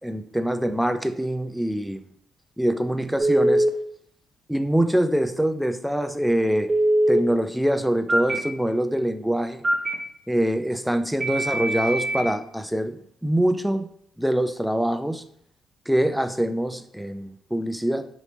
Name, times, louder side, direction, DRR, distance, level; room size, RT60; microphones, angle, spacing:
voice 1, 0.0-2.0 2.6-3.7 4.5-6.7 7.1-9.6 10.3-13.9 14.2-15.2 15.9-18.1, right 1 dB, ahead, 8 dB, 0.3 m, -24 dB
Telephone, 3.2-3.7 6.7-7.2 8.1-8.4 9.6-9.9 11.2-12.2, right 1 dB, 30° right, 0.7 m, -21 dB
3.2 x 3.0 x 4.0 m, 0.66 s
cardioid pair, 90°, 0 cm